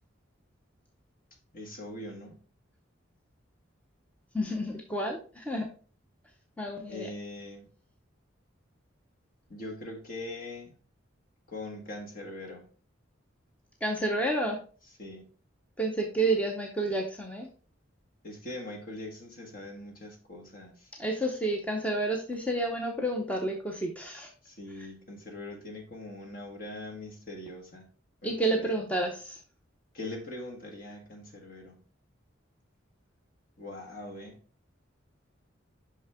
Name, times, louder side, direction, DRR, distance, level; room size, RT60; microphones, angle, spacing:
voice 1, 1.5-2.4 6.9-7.7 9.5-10.8 11.5-12.7 15.0-15.3 18.2-20.9 24.4-27.9 28.2-28.8 29.9-31.7 33.6-34.4, left 2 dB, 45° left, 1.6 m, -42 dB
voice 2, 4.3-5.7 6.6-7.1 13.8-14.6 15.8-17.5 21.0-24.3 24.8-24.9 28.2-29.4, right 1 dB, 5° left, 0.7 m, -30 dB
6.1 x 5.7 x 3.5 m
head